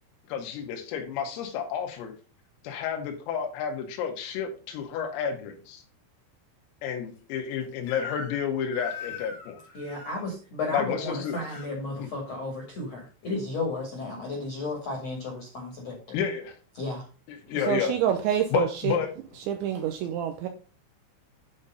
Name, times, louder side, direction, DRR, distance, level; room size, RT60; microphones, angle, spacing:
voice 1, 0.3-2.1 2.6-5.8 6.8-9.6 10.7-11.4 12.0-12.1 16.1-16.5 17.3-18.0 18.5-19.1, left 8 dB, 90° left, 3 dB, 4.1 m, -30 dB
Crying sobbing / Screech, 7.9-8.4 8.7-10.2 11.0-11.7, left 4 dB, 65° left, 3.3 m, -41 dB
voice 2, 9.7-16.2 16.7-17.0, left 2 dB, 50° left, -1 dB, 2.1 m, -33 dB
voice 3, 17.7-19.0 19.5-20.5, right 10 dB, 85° right, 5 dB, 2.7 m, -27 dB
9.7 x 4.2 x 5.0 m, 0.36 s
omnidirectional pair, 5.9 m